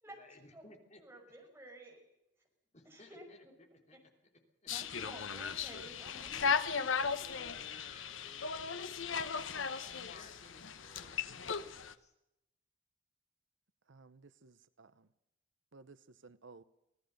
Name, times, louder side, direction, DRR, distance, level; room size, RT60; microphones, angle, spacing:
voice 1, 0.1-1.2 2.7-4.1 4.6-5.0 7.2-12.1, left 2 dB, 35° left, 4 dB, 3.2 m, -59 dB
voice 2, 1.0-2.0 2.9-3.5 3.9-4.0 4.7-7.2, right 1 dB, 10° right, 1 dB, 6.1 m, -53 dB
sound 1, 4.7-11.9, left 5 dB, 75° left, 1.1 m, -37 dB
voice 3, 13.9-15.1 15.7-16.6, right 4 dB, 70° right, 14 dB, 0.9 m, -57 dB
24.5 x 17.0 x 6.7 m, 0.87 s
head